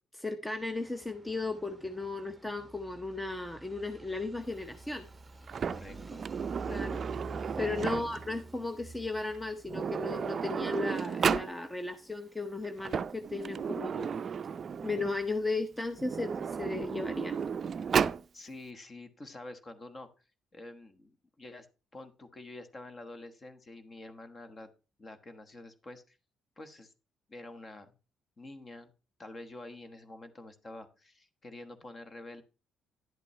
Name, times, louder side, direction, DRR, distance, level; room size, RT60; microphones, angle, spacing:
voice 1, 0.1-5.1 6.6-7.0 7.6-14.2 14.8-17.4, left 3 dB, 10° left, 8 dB, 0.7 m, -35 dB
sound 1, 0.5-18.0, right 2 dB, 10° right, 1.0 m, -50 dB
Sliding door, 5.5-8.3 9.3-9.4 9.7-11.5 12.6-15.2 15.9-18.2, right 6 dB, 45° right, 0.4 m, -33 dB
voice 2, 5.7-6.2 7.8-8.0 18.3-20.2 20.5-21.7 21.9-24.7 25.0-26.2 26.6-26.9 27.3-27.9 28.4-28.9 29.2-32.4, left 2 dB, 30° left, 8 dB, 1.2 m, -47 dB
10.5 x 8.3 x 3.2 m, 0.33 s
cardioid pair, 95°, 0 cm